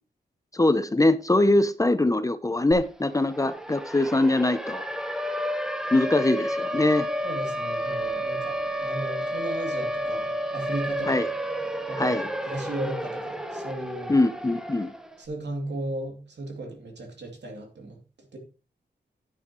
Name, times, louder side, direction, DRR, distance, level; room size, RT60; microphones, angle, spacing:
voice 1, 0.5-4.8 5.9-7.1 11.1-11.3 12.0-12.3 14.1-14.9, left 2 dB, 20° left, 0.6 m, -22 dB
Siren, 2.7-2.8 3.1-15.1, equal, 5° right, 1.1 m, -31 dB
voice 2, 7.2-10.3 10.5-11.3 11.9-14.2 15.2-18.0 18.3-18.4, right 1 dB, 75° right, 2.6 m, -35 dB
9.7 x 9.4 x 3.0 m
wide cardioid pair, 100°, 18 cm